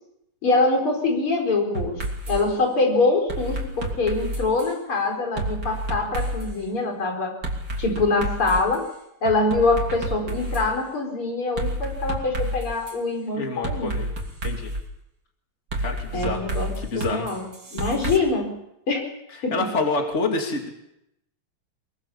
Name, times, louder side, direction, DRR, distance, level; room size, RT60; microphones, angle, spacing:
voice 1, 0.4-7.3 7.8-8.9 9.2-13.9 16.1-16.7 17.0-17.4 17.7-18.5 18.9-19.1 19.4-19.5, left 3 dB, 85° left, 2 dB, 5.5 m, -24 dB
sound 1, 1.7-2.4 3.3-4.7 5.4-6.5 7.4-8.7 9.2-10.7 11.6-13.0 13.6-14.8 15.7-18.2, right 1 dB, 50° right, 3.6 m, -29 dB
voice 2, 13.3-14.1 14.4-14.7 15.8-16.5 16.8-17.3 19.3-20.7, left 3 dB, 30° left, 2 dB, 3.1 m, -27 dB
22.5 x 22.5 x 7.2 m, 0.83 s
omnidirectional pair, 2.3 m